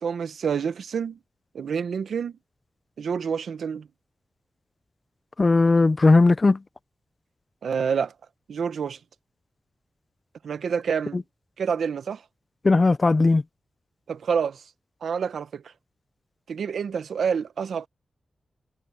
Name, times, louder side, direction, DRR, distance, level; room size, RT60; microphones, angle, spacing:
voice 1, 0.0-1.2 1.5-2.3 3.0-3.9 7.6-8.1 8.5-9.0 10.4-11.2 11.6-12.2 14.1-14.6 15.0-15.6 16.5-17.9, right 6 dB, 90° right, 1.1 m, -27 dB
voice 2, 5.4-6.6 11.1-11.2 12.6-13.4, left 3 dB, 30° left, 0.5 m, -18 dB
wide cardioid pair, 145°, 0 cm